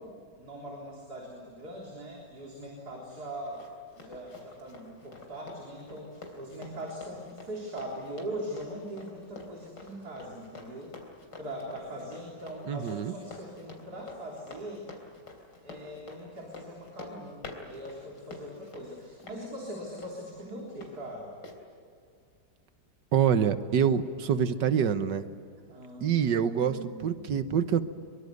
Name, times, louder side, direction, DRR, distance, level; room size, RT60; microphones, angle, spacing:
voice 1, 0.0-3.6 3.9-10.9 11.4-14.9 15.6-21.3 25.7-27.4, right 1 dB, 65° right, -2 dB, 4.2 m, -41 dB
Run, 3.1-20.9 21.4-21.6, left 3 dB, 90° left, 4.1 m, -48 dB
voice 2, 12.7-13.1 23.1-25.3 26.0-27.8, right 8 dB, 85° right, 11 dB, 1.7 m, -26 dB
23.5 x 23.5 x 9.5 m, 2.2 s
omnidirectional pair, 1.8 m